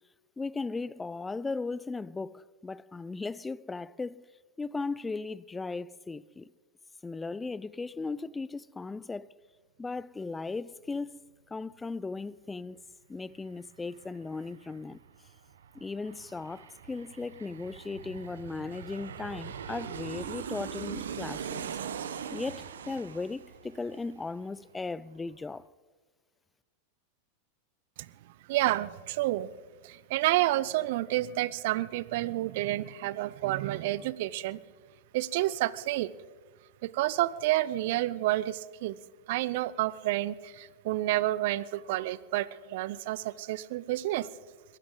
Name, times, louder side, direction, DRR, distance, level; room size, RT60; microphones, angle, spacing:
voice 1, 0.4-4.3 4.6-6.5 7.0-9.3 9.8-11.2 11.5-12.8 13.1-15.0 15.7-21.7 22.3-25.7, left 3 dB, 15° left, 0.4 m, -37 dB
Aircraft, 13.2-13.3 13.5-24.8 25.1-25.2, right 8 dB, 80° right, 1.0 m, -41 dB
voice 2, 28.5-29.5 29.8-34.6 35.1-36.1 36.8-39.0 39.3-44.3, right 16 dB, 65° right, 0.6 m, -29 dB
21.5 x 15.5 x 3.9 m
hypercardioid pair, 95°, 0 cm